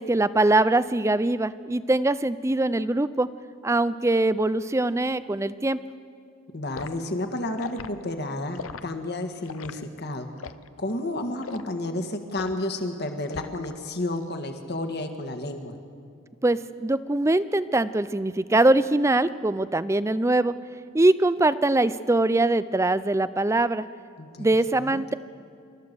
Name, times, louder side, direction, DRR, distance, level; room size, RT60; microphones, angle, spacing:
voice 1, 0.0-3.3 3.6-5.8 16.4-20.5 20.9-23.9 24.4-25.1, right 2 dB, 15° right, 15 dB, 0.4 m, -22 dB
voice 2, 6.5-10.3 10.8-15.7 24.2-24.5 24.8-25.1, left 1 dB, 50° left, 6 dB, 1.6 m, -31 dB
Liquid, 6.7-7.0 7.6-7.9 8.5-8.8 9.5-9.8 10.4-10.7 11.4-11.7 12.3-12.6 13.3-13.7 14.1-14.3, left 5 dB, 70° left, 0.6 m, -38 dB
28.0 x 13.5 x 6.8 m, 2.3 s
head